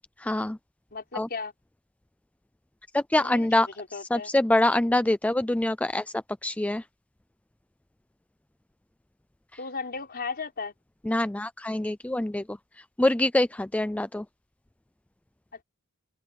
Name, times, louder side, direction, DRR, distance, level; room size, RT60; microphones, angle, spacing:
voice 1, 0.2-0.6 1.1-1.3 2.9-3.7 4.1-6.0 6.4-6.8 11.1-12.4 13.0-14.2, left 1 dB, 5° left, 0.4 m, -24 dB
voice 2, 0.9-1.5 3.2-4.3 9.6-10.7, left 4 dB, 45° left, 4.9 m, -36 dB
open air
head